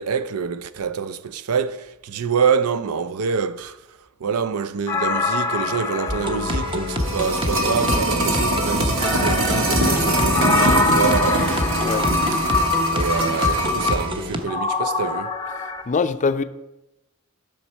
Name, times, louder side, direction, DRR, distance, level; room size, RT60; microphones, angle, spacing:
voice 1, 0.0-11.5 12.9-15.3, right 6 dB, 85° right, 0.5 m, -26 dB
sound 1, 4.9-7.7 9.0-12.8 14.5-15.8, left 3 dB, 15° left, 0.8 m, -25 dB
sound 2, 6.1-14.4, equal, 25° right, 0.8 m, -26 dB
sound 3, 6.7-14.1 14.4-14.5, equal, 65° right, 1.4 m, -22 dB
voice 2, 15.9-16.4, left 4 dB, 35° left, 0.4 m, -22 dB
11.5 x 6.4 x 4.4 m
head